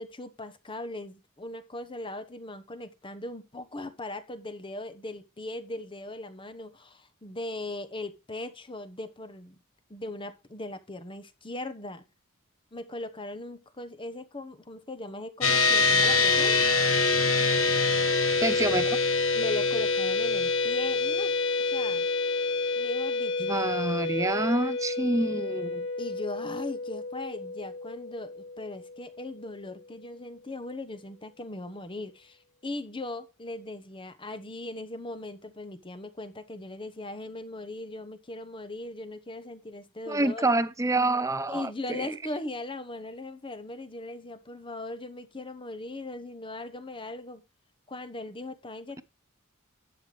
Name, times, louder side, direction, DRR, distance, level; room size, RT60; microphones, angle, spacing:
voice 1, 0.0-9.6 9.9-12.0 12.7-16.6 19.3-21.3 21.6-22.1 22.8-23.4 26.0-40.5 41.5-47.4 47.9-49.0, left 2 dB, 25° left, 1.0 m, -39 dB
sound 1, 15.4-29.0, left 3 dB, 70° left, 1.6 m, -26 dB
voice 2, 18.4-19.0 23.4-25.9 40.1-42.1, right 2 dB, 15° right, 0.6 m, -27 dB
11.5 x 7.9 x 3.3 m
head